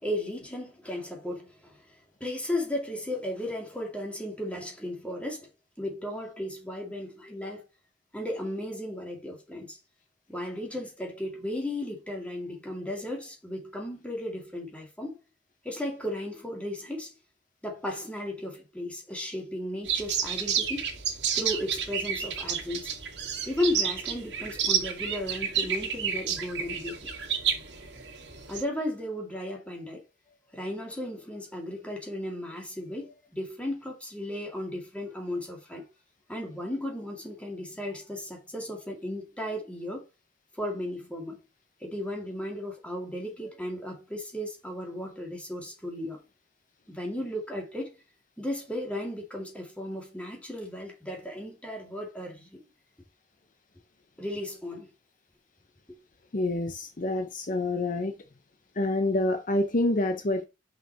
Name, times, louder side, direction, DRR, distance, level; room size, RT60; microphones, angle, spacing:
voice 1, 0.0-1.8 2.2-5.5 5.8-7.6 8.1-9.8 10.3-15.2 15.6-17.1 17.6-20.9 21.3-22.9 23.5-27.0 28.5-30.0 30.5-35.8 36.3-40.0 40.5-41.4 41.8-46.2 46.9-47.9 48.4-52.6 54.2-54.9, left 1 dB, 5° left, 2.5 m, -35 dB
sound 1, 19.9-28.6, right 8 dB, 80° right, 1.9 m, -30 dB
voice 2, 56.3-58.1 58.7-60.4, left 2 dB, 50° left, 0.8 m, -27 dB
5.8 x 5.6 x 4.3 m
head